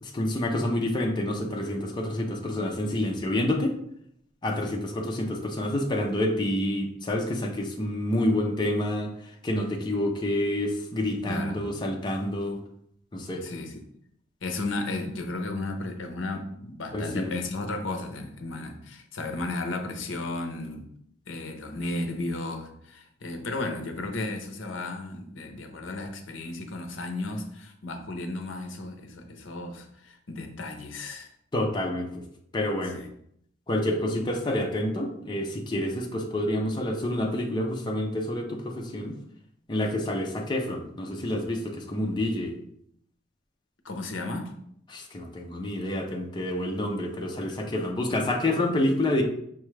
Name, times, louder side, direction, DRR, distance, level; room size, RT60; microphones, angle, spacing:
voice 1, 0.0-3.7 4.4-9.1 9.4-12.6 13.1-13.4 16.9-17.4 31.5-32.2 32.5-33.0 33.7-39.2 39.7-42.5 44.9-49.2, left 1 dB, 20° left, 1 dB, 0.5 m, -28 dB
voice 2, 11.2-11.6 13.4-13.9 14.4-20.9 21.3-31.3 32.9-33.1 43.8-44.5, left 2 dB, 65° left, 5 dB, 0.6 m, -34 dB
5.5 x 2.3 x 3.1 m, 0.70 s
head